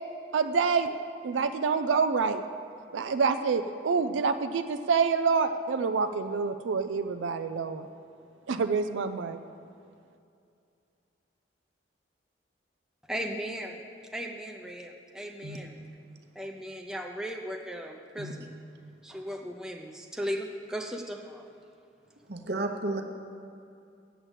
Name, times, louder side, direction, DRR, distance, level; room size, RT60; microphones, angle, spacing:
voice 1, 0.3-0.9 1.2-2.4 2.9-7.9 8.5-9.4, right 5 dB, 85° right, 9 dB, 0.4 m, -27 dB
voice 2, 13.1-13.8 14.1-15.9 16.4-18.5 19.0-21.5, equal, 5° right, 2 dB, 0.6 m, -37 dB
voice 3, 22.3-23.0, right 2 dB, 55° right, 4 dB, 1.0 m, -32 dB
8.0 x 7.5 x 8.1 m, 2.5 s
head